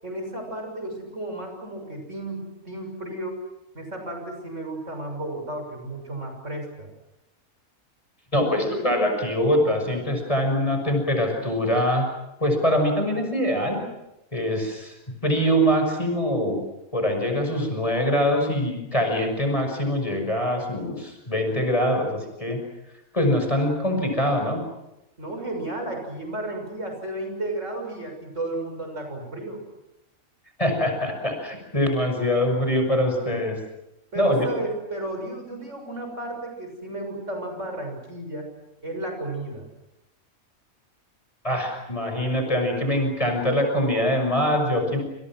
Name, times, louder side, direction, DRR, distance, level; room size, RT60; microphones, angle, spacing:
voice 1, 0.0-3.4 3.7-6.9 25.2-29.6 34.1-38.5 38.8-39.7, right 2 dB, 55° right, 3 dB, 7.1 m, -33 dB
voice 2, 8.3-12.1 12.4-13.8 14.3-14.9 15.2-16.6 16.9-22.6 23.1-24.6 30.6-33.6 34.1-34.5 41.4-45.0, equal, 25° left, 3 dB, 6.1 m, -23 dB
28.5 x 28.0 x 6.2 m, 0.94 s
omnidirectional pair, 1.5 m